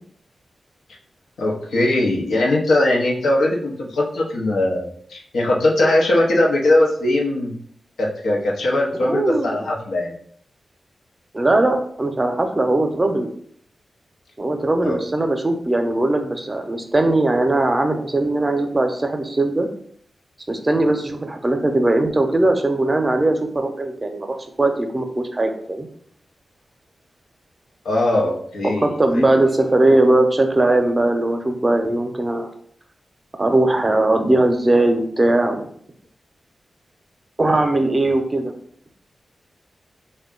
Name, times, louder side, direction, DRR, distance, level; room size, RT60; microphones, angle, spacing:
voice 1, 1.4-7.5 8.0-10.1 14.8-15.0 27.8-29.5, left 1 dB, 85° left, -2 dB, 0.7 m, -20 dB
voice 2, 9.0-9.6 11.3-13.3 14.4-19.7 20.5-24.3 24.6-25.9 28.8-32.5 33.4-35.7 37.4-38.5, right 2 dB, 35° right, 5 dB, 0.6 m, -19 dB
3.5 x 2.2 x 3.7 m, 0.62 s
cardioid pair, 45°, 0 cm